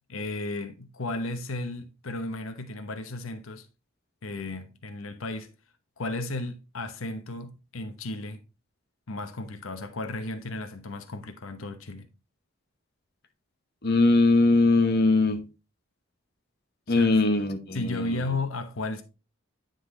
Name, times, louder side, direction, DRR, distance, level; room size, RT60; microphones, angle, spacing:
voice 1, 0.1-3.7 4.2-5.5 6.0-8.4 9.1-12.1 17.0-17.1 17.7-19.0, left 2 dB, 85° left, 0.9 m, -34 dB
voice 2, 13.8-15.4 16.9-18.2, left 2 dB, 50° left, 1.0 m, -21 dB
9.7 x 3.9 x 3.7 m
head